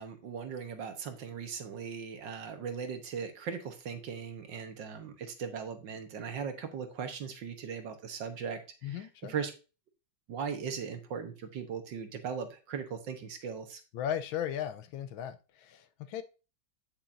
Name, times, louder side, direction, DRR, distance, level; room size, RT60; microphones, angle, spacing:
voice 1, 0.0-9.5 10.3-13.8, right 6 dB, 65° right, 1.7 m, -39 dB
voice 2, 8.8-9.3 13.9-16.2, left 10 dB, 75° left, 1.5 m, -36 dB
8.8 x 7.3 x 2.6 m
omnidirectional pair, 2.2 m